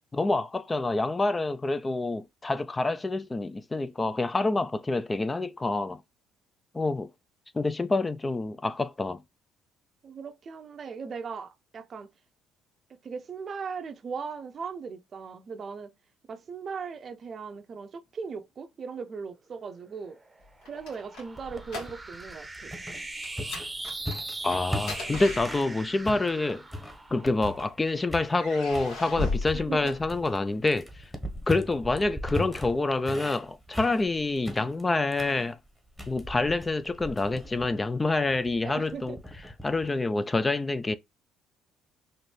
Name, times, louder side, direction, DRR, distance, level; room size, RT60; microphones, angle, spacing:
voice 1, 0.1-6.0 6.7-7.1 7.5-9.2 24.4-26.6 27.1-31.0 31.5-35.6 36.1-39.2 39.6-40.9, left 2 dB, 25° left, 0.4 m, -27 dB
voice 2, 10.0-12.1 12.9-15.9 16.3-20.2 20.6-22.7 29.5-30.0 38.7-39.2, right 5 dB, 45° right, 0.6 m, -38 dB
sound 1, 19.8-28.5, right 2 dB, 15° right, 0.8 m, -41 dB
sound 2, 20.4-22.3 22.6-22.8 23.2-26.0 26.9-27.7 28.3-30.6, left 2 dB, 75° left, 1.7 m, -37 dB
sound 3, 21.4-25.7 26.0-27.8 28.1-28.9 29.4-39.9, equal, 5° left, 1.1 m, -39 dB
4.2 x 2.6 x 3.3 m
supercardioid pair, 70°, 0 cm